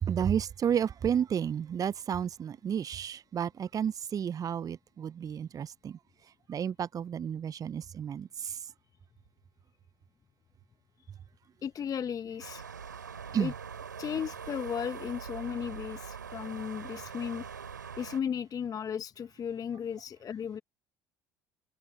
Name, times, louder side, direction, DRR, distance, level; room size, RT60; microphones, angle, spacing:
voice 1, 0.0-6.0 6.5-8.6 13.3-13.5, right 8 dB, 35° right, 0.8 m, -31 dB
voice 2, 11.6-12.7 13.4-13.5 14.0-17.4 18.0-20.6, left 8 dB, 40° left, 1.2 m, -35 dB
sound 1, 12.4-18.2, right 6 dB, 85° right, 3.4 m, -43 dB
figure-of-eight pair, 60°, 10 cm